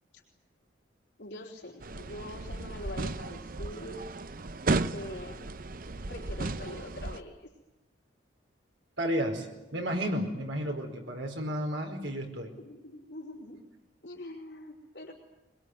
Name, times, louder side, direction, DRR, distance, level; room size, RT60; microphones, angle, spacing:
voice 1, 1.2-4.1 4.9-5.6 6.1-7.5 12.6-13.6 14.0-15.1, left 1 dB, 65° left, 0 dB, 4.4 m, -44 dB
sound 1, 1.8-7.2, right 2 dB, 50° right, 0.8 m, -34 dB
voice 2, 9.0-12.5, equal, 80° right, 4 dB, 4.9 m, -32 dB
23.0 x 21.5 x 9.7 m, 0.99 s
head